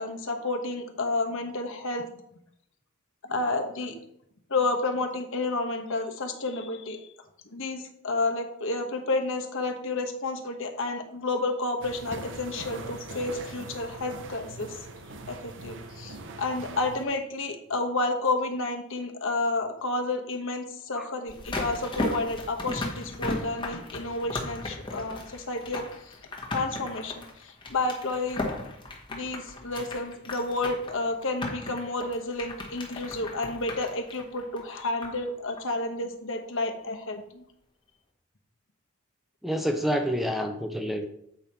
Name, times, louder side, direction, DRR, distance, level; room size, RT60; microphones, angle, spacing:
voice 1, 0.0-2.1 3.3-3.9 4.5-7.0 7.5-14.9 15.3-25.9 26.5-28.4 29.1-37.4, left 2 dB, 60° left, 3 dB, 1.2 m, -30 dB
sound 1, 11.8-17.1, right 2 dB, 55° right, 0.8 m, -42 dB
sound 2, 21.3-35.3 35.6-35.7, left 2 dB, 20° left, 1.4 m, -36 dB
voice 2, 39.4-41.1, equal, ahead, 5 dB, 0.5 m, -28 dB
8.0 x 5.3 x 4.4 m, 0.73 s
head